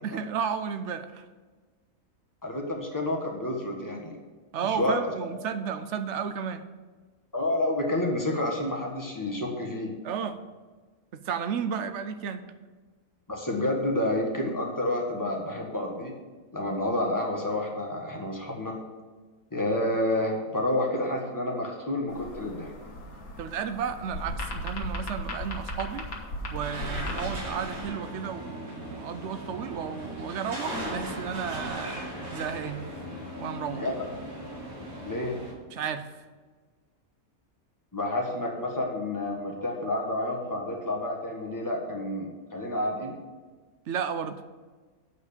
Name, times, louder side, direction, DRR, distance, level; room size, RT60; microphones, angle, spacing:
voice 1, 0.0-1.2 4.5-6.6 10.0-10.4 11.1-12.4 23.4-26.1 26.5-32.1 32.3-32.8 33.4-33.8 35.7-36.1 43.9-44.4, right 7 dB, 65° right, 10 dB, 0.8 m, -33 dB
voice 2, 2.4-4.2 4.7-5.0 7.3-9.9 13.3-16.1 16.5-18.7 19.5-22.7 33.7-34.0 35.0-35.4 37.9-43.2, left 1 dB, 15° left, -1 dB, 1.4 m, -29 dB
sound 1, 22.1-27.9, left 1 dB, 85° left, 1.8 m, -37 dB
sound 2, 26.6-35.5, equal, 90° right, 2.8 m, -38 dB
8.3 x 4.9 x 6.7 m, 1.4 s
omnidirectional pair, 1.5 m